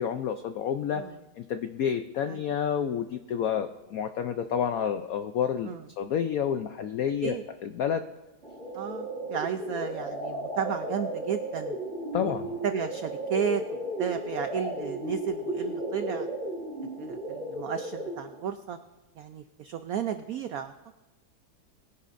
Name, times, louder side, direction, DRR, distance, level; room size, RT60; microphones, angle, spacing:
voice 1, 0.0-1.0 1.4-7.3 7.6-8.0 12.1-12.5, left 8 dB, 85° left, 8 dB, 0.7 m, -29 dB
sound 1, 8.4-18.4, right 1 dB, 35° right, 2.6 m, -34 dB
voice 2, 8.7-11.8 12.2-12.3 12.6-13.6 14.0-16.3 17.0-18.8 19.2-20.7, right 8 dB, 85° right, 8 dB, 0.7 m, -33 dB
21.0 x 10.5 x 2.6 m, 1.1 s
omnidirectional pair, 2.1 m